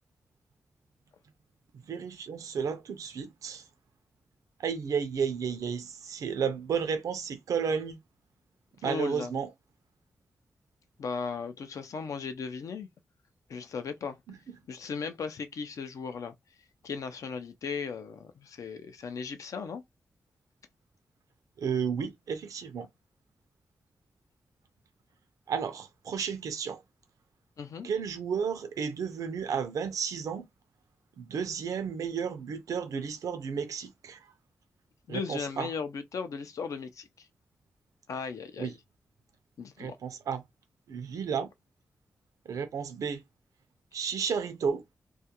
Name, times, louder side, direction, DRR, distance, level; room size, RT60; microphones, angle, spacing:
voice 1, 1.9-3.7 4.6-8.0 8.8-9.5 14.3-14.6 21.6-22.9 25.5-26.8 27.8-30.5 31.2-34.3 35.1-35.7 38.6-38.7 39.8-40.4 40.9-41.5 42.5-43.2 43.9-44.8, right 6 dB, 85° right, 0.4 m, -32 dB
voice 2, 8.8-9.3 11.0-12.9 13.5-14.2 14.7-16.3 16.8-19.8 27.6-27.9 35.1-37.3 38.1-38.7 39.6-40.0, left 5 dB, 75° left, 0.4 m, -37 dB
2.3 x 2.2 x 2.8 m
wide cardioid pair, 95°, 6 cm